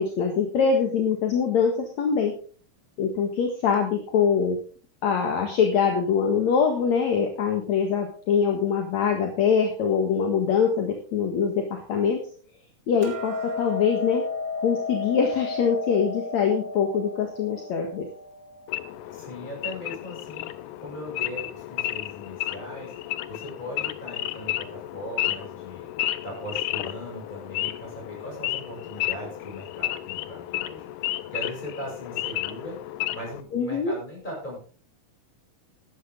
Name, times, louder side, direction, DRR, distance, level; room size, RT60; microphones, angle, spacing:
voice 1, 0.0-2.3 3.0-4.6 5.0-12.2 12.9-14.2 14.6-18.1 33.5-33.9, left 6 dB, 60° left, 3 dB, 2.8 m, -23 dB
Hammer, 13.0-19.2, left 3 dB, 25° right, 3.2 m, -33 dB
Wild animals / Idling, 18.7-33.4, left 15 dB, 80° left, 2.1 m, -32 dB
voice 2, 19.1-20.5 20.8-25.9 26.2-32.8 33.1-34.6, equal, 10° left, -2 dB, 7.5 m, -39 dB
14.0 x 11.5 x 3.8 m, 0.41 s
omnidirectional pair, 3.8 m